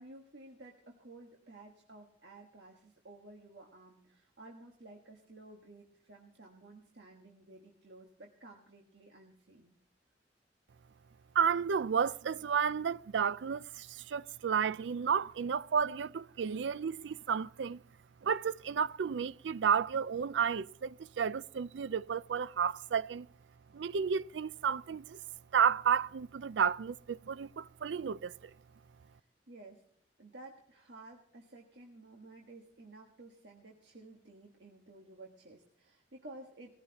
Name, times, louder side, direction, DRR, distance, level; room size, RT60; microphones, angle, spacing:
voice 1, 0.0-9.8 29.0-29.8 30.2-36.8, right 2 dB, 75° right, 1.5 m, -54 dB
voice 2, 11.3-17.8 18.2-23.3 23.7-25.2 25.5-28.5, right 7 dB, 90° right, 0.4 m, -32 dB
19.0 x 15.0 x 2.9 m
head